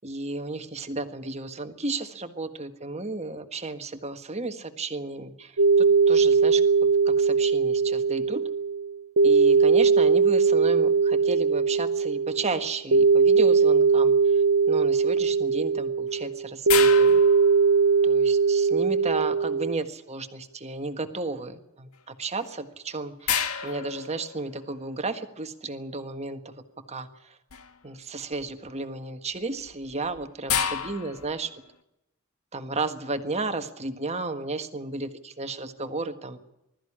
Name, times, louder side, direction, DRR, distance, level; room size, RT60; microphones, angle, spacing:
voice 1, 0.0-6.6 7.0-8.4 9.2-17.2 18.0-27.4 27.8-31.5 32.5-36.4, right 3 dB, 30° right, 8 dB, 1.6 m, -33 dB
sound 1, 5.6-19.8, right 5 dB, 85° right, 0.7 m, -20 dB
sound 2, 16.7-18.2 22.4-22.5 23.3-24.9 27.5-27.9 28.3-28.7 29.6-31.6, left 8 dB, 85° left, 1.7 m, -31 dB
21.0 x 13.5 x 10.0 m, 0.87 s
head